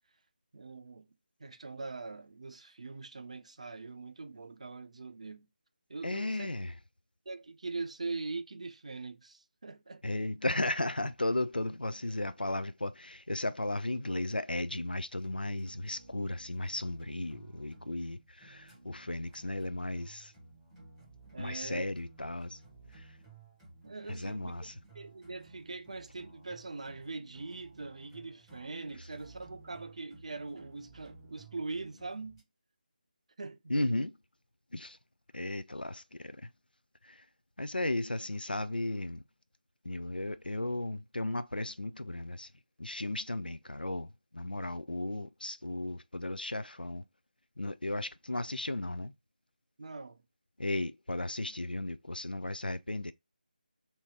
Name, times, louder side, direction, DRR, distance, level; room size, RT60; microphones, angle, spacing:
voice 1, 0.5-5.5 5.9-6.5 7.3-10.0 21.3-21.9 23.8-32.4 33.4-33.6 49.8-50.2, right 3 dB, 45° right, 0.5 m, -42 dB
voice 2, 6.0-6.7 10.0-20.3 21.4-22.6 22.9-23.2 24.1-24.7 33.7-34.2 34.7-35.0 35.3-36.5 37.0-37.3 37.6-39.2 39.8-42.5 42.8-47.0 47.6-49.1 50.6-53.1, left 2 dB, 80° left, 0.4 m, -35 dB
sound 1, 15.2-32.4, right 3 dB, ahead, 0.8 m, -56 dB
2.9 x 2.8 x 3.5 m
figure-of-eight pair, 160°, 5 cm